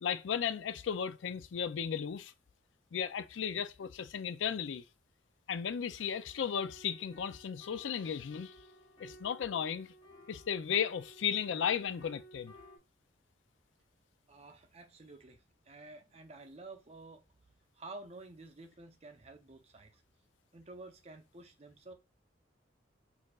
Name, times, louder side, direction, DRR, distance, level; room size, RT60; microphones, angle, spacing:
voice 1, 0.0-2.3 2.9-4.8 5.5-8.5 9.0-9.9 10.3-12.5, left 7 dB, 85° left, 0.4 m, -35 dB
sound 1, 6.0-12.8, right 1 dB, 25° left, 0.9 m, -56 dB
voice 2, 14.3-17.2 17.7-20.0 20.5-21.9, right 2 dB, 35° right, 0.6 m, -51 dB
4.5 x 2.6 x 2.3 m
head